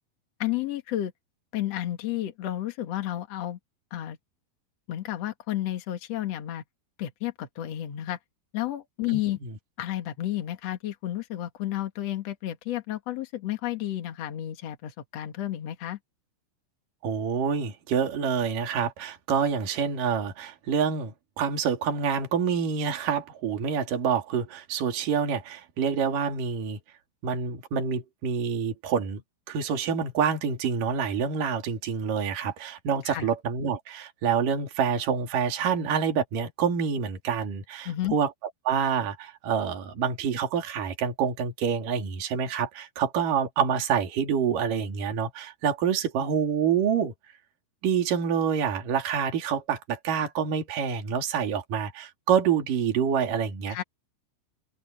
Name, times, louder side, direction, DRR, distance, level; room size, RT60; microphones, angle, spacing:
voice 1, 0.4-1.1 1.5-3.6 3.9-4.2 4.9-6.6 7.0-8.2 8.5-9.4 9.8-16.0 33.0-33.3 37.8-38.1 53.7-53.8, left 13 dB, 75° left, 1.5 m, -31 dB
voice 2, 9.1-9.5 17.0-26.8 27.2-29.2 29.5-38.3 38.7-47.1 47.8-53.8, right 7 dB, 45° right, 4.0 m, -27 dB
open air
omnidirectional pair, 5.8 m